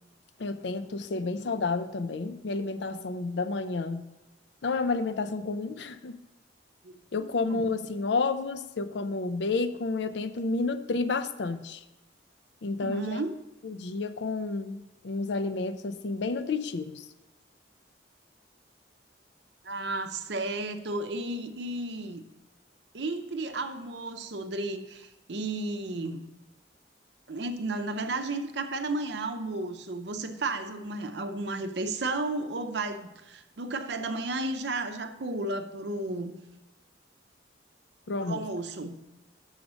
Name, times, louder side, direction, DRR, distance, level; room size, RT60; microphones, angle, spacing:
voice 1, 0.4-4.0 4.6-6.2 7.1-11.8 12.6-13.2 13.6-17.0 38.1-38.5, left 3 dB, 65° left, 11 dB, 0.5 m, -30 dB
voice 2, 12.8-13.3 19.6-22.2 22.9-26.2 27.3-36.3 38.2-39.0, right 2 dB, 65° right, 8 dB, 0.6 m, -33 dB
6.4 x 6.1 x 6.2 m, 1.0 s
head